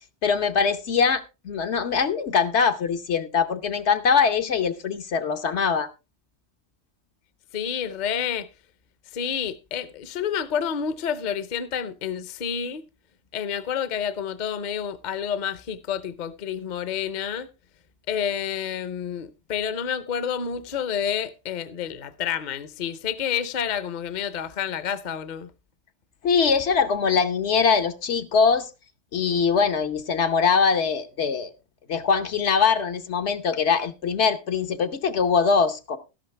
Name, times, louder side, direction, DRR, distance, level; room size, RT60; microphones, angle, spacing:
voice 1, 0.2-5.9 26.2-28.7 29.1-31.5 31.9-36.0, left 5 dB, 70° left, 1.2 m, -22 dB
voice 2, 7.5-8.5 9.1-12.8 13.3-17.5 18.1-25.5, left 8 dB, 45° left, 0.8 m, -29 dB
13.0 x 11.5 x 3.3 m
omnidirectional pair, 1.2 m